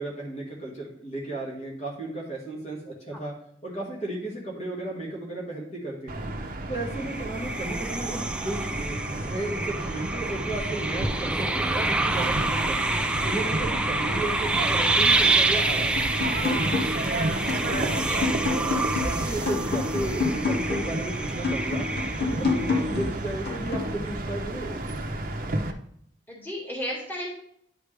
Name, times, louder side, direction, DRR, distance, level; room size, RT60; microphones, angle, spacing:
voice 1, 0.0-3.3 3.6-6.3 6.7-9.0 9.3-12.9 13.2-16.0 16.4-16.6 18.2-18.4 19.0-24.8, right 2 dB, 35° left, -3 dB, 2.0 m, -34 dB
sound 1, 6.1-25.7, right 1 dB, 50° right, 0.8 m, -32 dB
sound 2, 6.9-23.2, right 2 dB, 5° right, 0.3 m, -28 dB
sound 3, 16.0-17.1 17.5-21.0 21.4-24.0, left 4 dB, 60° left, 1.8 m, -29 dB
voice 2, 17.3-18.3 26.3-27.3, equal, 10° left, -4 dB, 2.1 m, -36 dB
10.0 x 5.0 x 3.4 m, 0.67 s
head